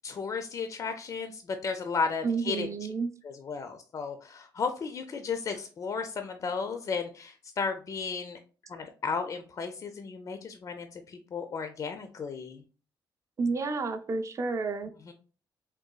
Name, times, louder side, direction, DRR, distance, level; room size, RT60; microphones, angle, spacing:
voice 1, 0.0-2.7 3.2-8.4 8.7-12.6 15.1-15.2, left 5 dB, 40° left, 6 dB, 0.4 m, -34 dB
voice 2, 2.2-3.1 13.4-14.9, right 4 dB, 35° right, 8 dB, 0.4 m, -30 dB
3.8 x 2.2 x 2.2 m, 0.38 s
cardioid pair, 100°, 8 cm